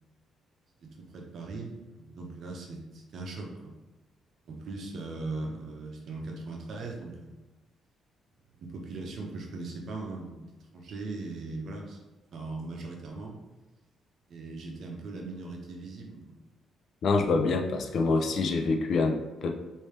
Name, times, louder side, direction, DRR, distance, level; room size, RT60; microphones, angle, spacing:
voice 1, 0.8-3.7 4.5-7.4 8.5-10.4 10.7-12.0 12.3-13.4 14.3-16.4, right 3 dB, 60° right, 0 dB, 0.7 m, -39 dB
voice 2, 17.0-19.5, left 3 dB, 65° left, 3 dB, 0.4 m, -26 dB
3.2 x 2.7 x 3.2 m, 1.2 s
cardioid pair, 90°, 0 cm